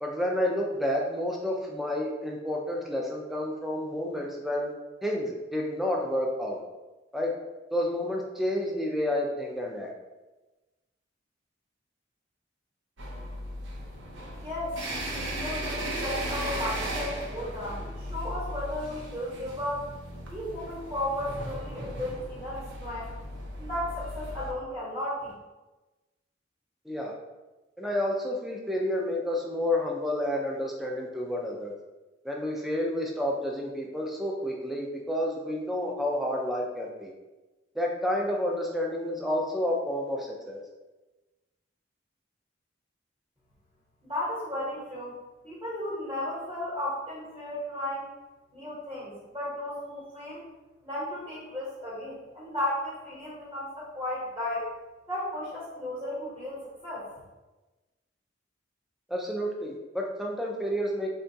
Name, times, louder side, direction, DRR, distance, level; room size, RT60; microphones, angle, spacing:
voice 1, 0.0-4.7 5.0-6.6 7.1-7.3 7.7-9.9 26.9-27.1 27.8-31.7 32.2-37.1 37.8-40.6 59.1-61.1, left 1 dB, ahead, -1 dB, 0.3 m, -30 dB
sound 1, 13.0-24.5, right 1 dB, 75° right, 0.6 m, -36 dB
voice 2, 14.4-14.8 15.1-19.8 20.3-23.1 23.6-25.3 44.1-45.2 45.4-48.1 48.5-50.5 50.8-54.7 55.1-57.0, left 1 dB, 25° right, -9 dB, 0.9 m, -34 dB
3.7 x 2.2 x 2.6 m, 1.1 s
head